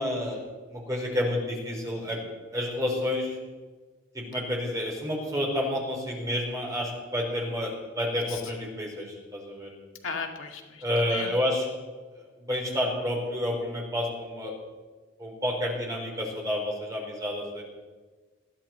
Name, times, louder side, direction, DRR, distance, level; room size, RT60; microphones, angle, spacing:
voice 1, 0.0-2.2 2.5-3.4 4.1-9.7 10.8-11.7 12.1-14.5 15.2-17.6, left 1 dB, 15° right, -2 dB, 4.2 m, -30 dB
voice 2, 10.0-11.3, left 5 dB, 85° left, 2 dB, 2.3 m, -37 dB
21.0 x 14.5 x 4.5 m, 1.4 s
head